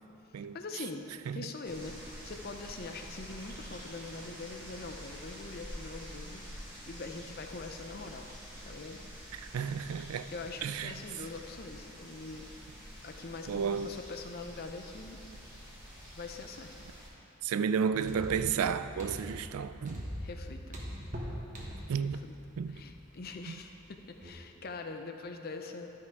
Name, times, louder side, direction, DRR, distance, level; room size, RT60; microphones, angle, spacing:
voice 1, 0.5-6.4 6.9-8.3 8.7-9.0 10.3-12.5 13.0-15.2 16.2-16.9 20.2-20.8 22.0-22.3 22.7-25.9, left 3 dB, 45° left, 0.5 m, -43 dB
sound 1, 1.6-17.1, equal, 10° right, 1.8 m, -47 dB
voice 2, 9.5-10.2 10.6-10.9 13.5-14.0 17.4-20.0 21.9-22.2 22.6-22.8, right 6 dB, 80° right, 0.3 m, -32 dB
sound 2, 17.9-24.0 24.2-24.3, equal, 35° right, 1.1 m, -42 dB
12.0 x 5.7 x 4.7 m
head